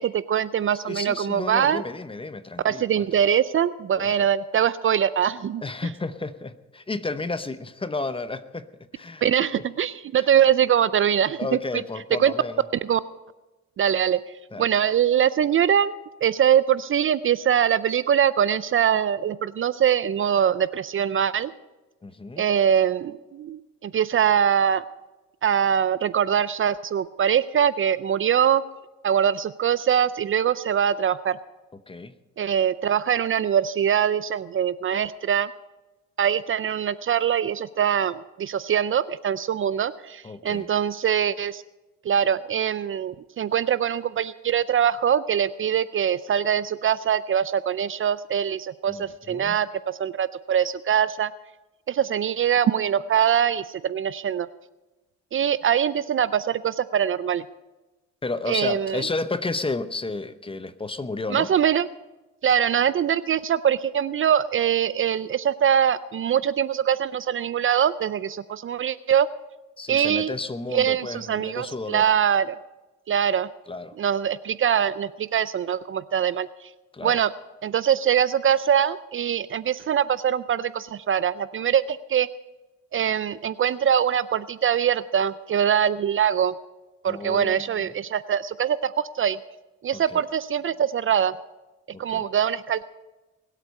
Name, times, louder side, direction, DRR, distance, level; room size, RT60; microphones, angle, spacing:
voice 1, 0.0-1.8 2.6-5.6 9.2-11.4 12.2-12.3 12.9-13.0 13.8-14.2 14.6-15.9 16.2-21.5 22.4-24.8 25.4-28.6 29.0-31.4 32.4-35.5 36.2-41.6 42.1-51.3 51.9-54.5 55.3-57.4 58.5-59.0 61.3-61.9 62.4-69.3 69.9-70.3 70.7-72.6 73.1-73.5 74.0-76.5 77.0-77.3 77.6-82.3 82.9-86.5 87.0-89.4 89.8-91.3 92.0-92.8, right 9 dB, 45° right, 16 dB, 0.4 m, -23 dB
voice 2, 0.9-3.1 4.0-4.3 5.6-9.3 10.2-10.3 11.4-12.6 14.5-14.7 22.0-22.5 31.7-32.1 40.2-40.7 48.9-49.6 58.2-61.5 69.8-72.1 73.7-74.0 76.9-77.2 87.1-87.9 89.9-90.2 91.9-92.3, left 3 dB, 20° left, 12 dB, 0.8 m, -32 dB
21.0 x 8.3 x 5.4 m, 1.1 s
cardioid pair, 90°, 30 cm